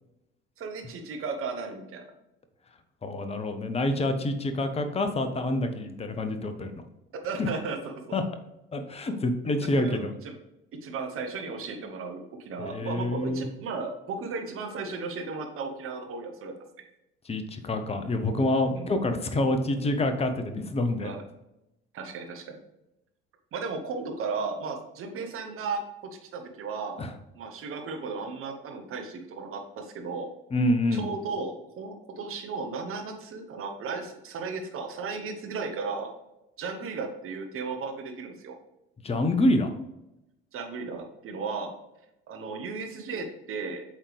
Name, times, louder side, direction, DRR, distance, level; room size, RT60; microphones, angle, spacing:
voice 1, 0.6-2.1 7.2-7.8 8.1-8.2 9.8-10.3 10.8-16.5 18.7-18.9 21.0-21.2 21.9-22.6 23.5-27.0 27.3-30.3 30.9-36.1 36.6-38.5 40.5-41.7 42.3-43.8, right 4 dB, 45° right, 3 dB, 1.3 m, -35 dB
voice 2, 3.0-6.8 7.4-7.5 8.1-8.2 8.7-10.1 12.6-13.4 17.3-21.1 27.0-27.1 30.5-31.1 39.0-39.7, left 1 dB, 20° left, 8 dB, 0.8 m, -27 dB
8.3 x 3.7 x 3.3 m, 0.90 s
figure-of-eight pair, 60°, 31 cm